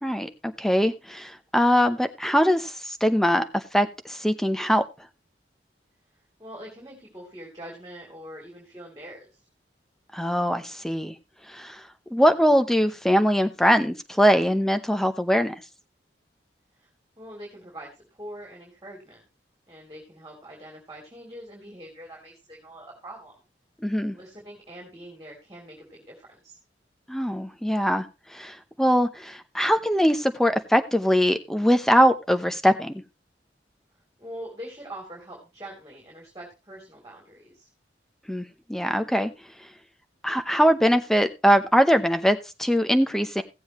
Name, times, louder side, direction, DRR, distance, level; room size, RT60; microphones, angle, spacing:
voice 1, 0.0-4.8 10.1-11.1 11.5-11.8 12.1-15.6 23.8-24.2 27.1-28.1 28.3-33.0 38.3-39.3 40.2-43.4, equal, ahead, 8 dB, 0.8 m, -22 dB
voice 2, 6.4-9.3 16.8-16.9 17.2-19.2 19.7-23.3 24.1-26.6 34.2-37.7, right 1 dB, 20° right, -1 dB, 3.2 m, -43 dB
16.5 x 7.8 x 3.1 m, 0.28 s
head